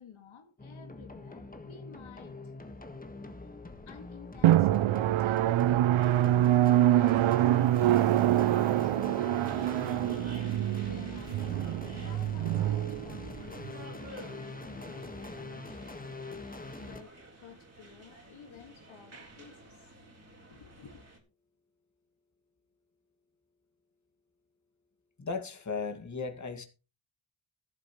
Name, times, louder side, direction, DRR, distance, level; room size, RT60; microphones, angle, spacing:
voice 1, 0.0-2.5 3.9-10.3 10.8-11.7 12.0-16.0 16.7-17.2 17.4-21.0, left 6 dB, 75° left, 2.1 m, -53 dB
sound 1, 0.6-17.0, left 3 dB, 20° left, 1.5 m, -44 dB
Drum, 4.4-13.7, right 13 dB, 75° right, 0.5 m, -25 dB
sound 2, 9.3-21.2, right 2 dB, 30° right, 3.9 m, -52 dB
voice 2, 25.2-26.7, left 4 dB, 35° left, 2.2 m, -36 dB
13.0 x 12.0 x 3.1 m
wide cardioid pair, 110°, 48 cm